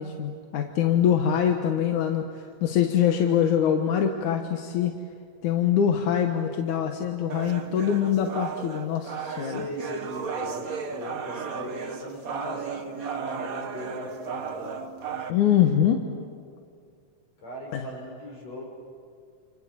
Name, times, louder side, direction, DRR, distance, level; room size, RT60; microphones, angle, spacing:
voice 1, 0.0-4.9 5.4-9.6 15.3-16.1 17.7-17.9, left 9 dB, 90° left, 4 dB, 2.7 m, -24 dB
sound 1, 7.3-15.3, right 6 dB, 45° right, 1.1 m, -35 dB
voice 2, 9.4-14.8 17.4-18.6, equal, 60° left, -1 dB, 7.2 m, -38 dB
29.0 x 28.0 x 7.0 m, 2.3 s
omnidirectional pair, 3.3 m